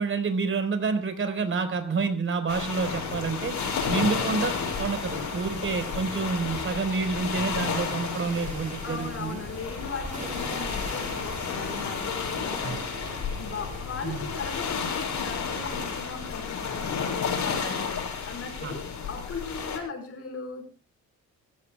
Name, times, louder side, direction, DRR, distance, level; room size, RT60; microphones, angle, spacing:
voice 1, 0.0-3.5 3.9-4.5 4.8-9.4 12.6-12.8 14.0-14.2 18.6-18.7, right 4 dB, 45° right, 8 dB, 4.6 m, -28 dB
sound 1, 2.5-19.8, left 6 dB, 70° left, 6.8 m, -32 dB
sound 2, 3.0-16.0, right 3 dB, 25° right, 4.9 m, -42 dB
voice 2, 8.8-12.8 13.3-17.9 18.3-20.7, left 5 dB, 50° left, 5 dB, 5.3 m, -38 dB
26.0 x 15.5 x 2.3 m, 0.30 s
cardioid pair, 90°, 30 cm